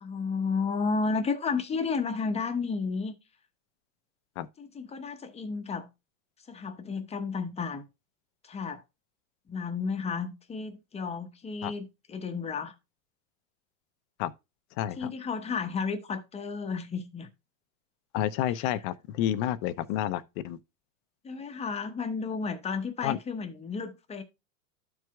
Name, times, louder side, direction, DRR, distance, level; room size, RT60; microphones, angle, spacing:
voice 1, 0.0-3.1 4.6-5.9 6.5-7.9 8.4-8.8 9.5-12.7 15.0-17.3 18.5-18.7 21.2-24.2, left 4 dB, 15° left, 0.8 m, -32 dB
voice 2, 14.8-15.1 18.1-20.6 23.0-23.2, left 11 dB, 50° left, 0.6 m, -30 dB
13.5 x 4.7 x 2.3 m
supercardioid pair, 140°, 41 cm